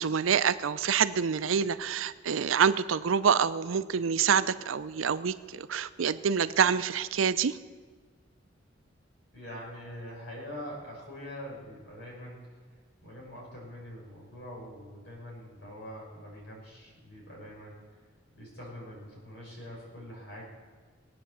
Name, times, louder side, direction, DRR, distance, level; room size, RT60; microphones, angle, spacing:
voice 1, 0.0-7.6, right 7 dB, 90° right, 14 dB, 0.5 m, -26 dB
voice 2, 9.3-12.4 13.0-17.8 18.3-20.4, equal, 60° left, -3 dB, 5.6 m, -44 dB
20.5 x 8.7 x 6.9 m, 1.5 s
head